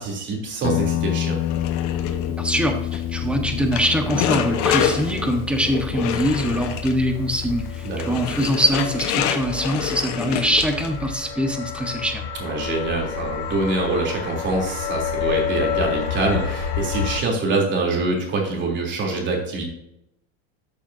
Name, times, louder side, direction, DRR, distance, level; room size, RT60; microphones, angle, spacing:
voice 1, 0.0-1.4 7.8-8.2 12.4-19.6, right 2 dB, 35° right, 0 dB, 3.4 m, -25 dB
Guitar, 0.6-8.5, left 12 dB, 40° left, 0.5 m, -29 dB
sound 1, 1.4-11.1, left 8 dB, 60° left, 1.3 m, -28 dB
voice 2, 2.4-12.2, equal, 5° right, 4 dB, 1.3 m, -23 dB
sound 2, 6.6-17.2, left 7 dB, 85° left, 3.3 m, -30 dB
13.0 x 6.8 x 2.8 m, 0.81 s
supercardioid pair, 135°, 32 cm